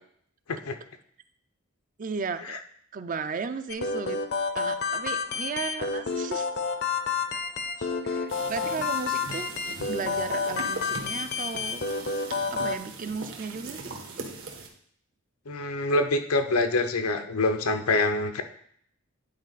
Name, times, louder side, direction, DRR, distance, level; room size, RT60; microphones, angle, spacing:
voice 1, 2.0-2.6 2.9-4.2 4.5-6.5 7.0-7.2 7.8-9.5 9.9-11.9 12.5-13.9, right 5 dB, 40° right, 10 dB, 0.4 m, -35 dB
sound 1, 3.7-12.8, left 4 dB, 50° left, 0.6 m, -30 dB
sound 2, 8.3-14.7, right 3 dB, 65° right, 1.2 m, -40 dB
voice 2, 15.5-18.4, left 2 dB, 90° left, 7 dB, 0.7 m, -25 dB
9.6 x 4.4 x 4.0 m, 0.64 s
head